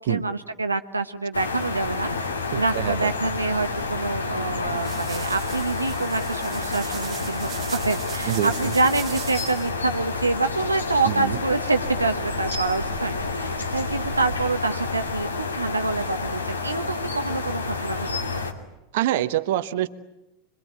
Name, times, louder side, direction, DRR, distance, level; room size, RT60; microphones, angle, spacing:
voice 1, 0.0-2.3 2.5-18.4, right 3 dB, 90° right, 7 dB, 1.1 m, -26 dB
sound 1, 1.3-18.5, left 3 dB, 85° left, 2.6 m, -29 dB
voice 2, 2.5-3.1 8.3-8.5 11.0-11.4 18.9-19.9, right 13 dB, 60° right, 11 dB, 1.1 m, -25 dB
sound 2, 4.3-9.7, right 11 dB, 35° right, 1.2 m, -39 dB
25.0 x 23.5 x 9.1 m, 0.93 s
figure-of-eight pair, 85°, 0 cm